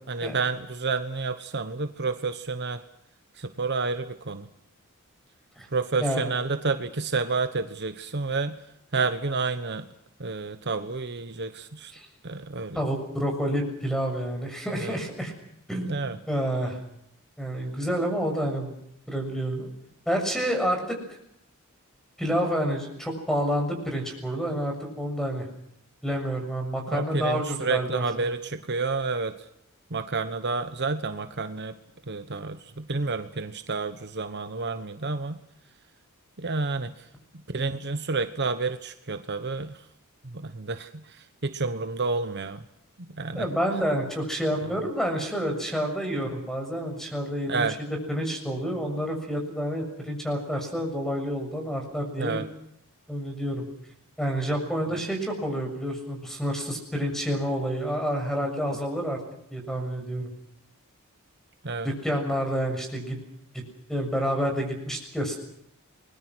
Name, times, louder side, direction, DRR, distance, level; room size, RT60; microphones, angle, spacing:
voice 1, 0.1-2.8 3.4-4.5 5.7-8.6 8.9-9.9 10.2-11.9 12.2-12.8 14.8-15.0 15.8-16.2 26.9-29.3 29.9-31.7 32.1-35.4 36.4-37.1 37.5-39.8 40.2-42.6 43.0-43.5 44.6-44.7 46.2-46.4 47.5-47.8 52.2-52.5 61.6-61.9, right 4 dB, 50° right, 10 dB, 1.1 m, -30 dB
voice 2, 6.0-6.3 11.9-12.1 12.7-15.3 15.7-16.8 17.4-18.8 19.1-19.7 20.1-21.0 22.2-25.5 26.0-28.3 43.4-47.7 48.1-52.4 53.1-53.7 54.2-59.2 59.5-60.3 61.8-63.2 63.5-63.6 63.9-65.4, equal, ahead, 4 dB, 6.8 m, -29 dB
29.5 x 21.5 x 6.3 m, 0.75 s
head